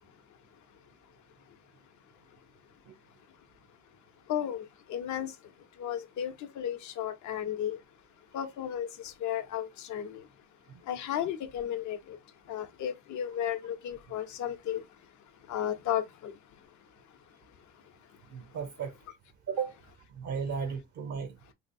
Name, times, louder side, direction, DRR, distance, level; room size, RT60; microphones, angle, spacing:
voice 1, 0.0-1.1 1.4-1.6 2.4-3.5 3.9-4.0 4.2-10.5 10.8-18.6, left 10 dB, 70° left, 0.6 m, -36 dB
voice 2, 18.3-18.9 19.5-19.8 20.2-21.4, right 6 dB, 70° right, 0.6 m, -34 dB
3.2 x 2.7 x 2.5 m
cardioid pair, 90°, 30 cm